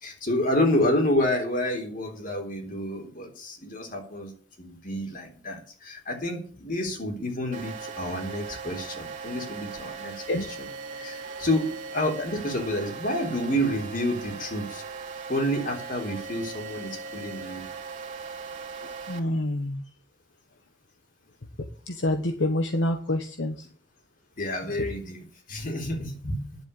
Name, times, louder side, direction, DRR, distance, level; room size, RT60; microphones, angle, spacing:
voice 1, 0.0-4.3 4.6-10.7 10.9-14.8 15.3-17.6 24.4-25.2 25.5-26.4, left 1 dB, 50° left, 3 dB, 3.6 m, -29 dB
sound 1, 7.5-19.2, right 4 dB, 40° right, 2.4 m, -39 dB
voice 2, 18.8-19.8 21.9-23.5, left 1 dB, 75° left, 7 dB, 1.2 m, -27 dB
10.5 x 7.8 x 8.7 m, 0.43 s
head